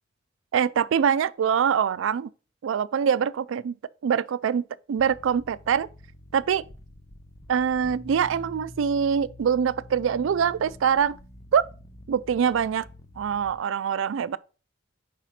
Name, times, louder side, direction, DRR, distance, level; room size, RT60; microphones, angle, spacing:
voice 1, 0.5-2.3 2.6-3.8 4.0-5.9 6.3-6.6 7.5-11.2 11.5-11.6 12.1-12.9 13.2-14.4, right 7 dB, 80° right, 0.3 m, -24 dB
sound 1, 5.0-13.6, left 1 dB, 15° left, 0.4 m, -47 dB
4.9 x 4.1 x 5.8 m
head